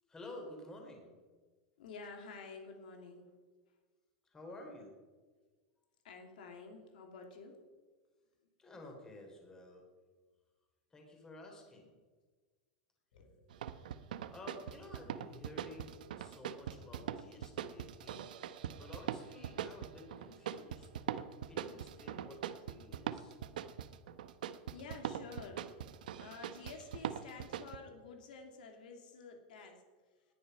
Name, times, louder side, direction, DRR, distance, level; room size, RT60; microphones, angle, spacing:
voice 1, 0.1-1.1 4.2-4.9 8.6-9.9 10.9-12.0 14.3-18.3 18.8-20.9 21.5-23.4, left 1 dB, 15° left, 2 dB, 3.4 m, -52 dB
voice 2, 1.8-3.2 6.0-7.6 13.1-13.5 14.1-14.2 24.7-25.7 26.2-29.8, left 4 dB, 85° left, 3 dB, 2.9 m, -50 dB
sound 1, 13.5-27.8, right 10 dB, 90° right, 0.9 m, -42 dB
19.5 x 10.5 x 5.4 m, 1.4 s
supercardioid pair, 155°, 4 cm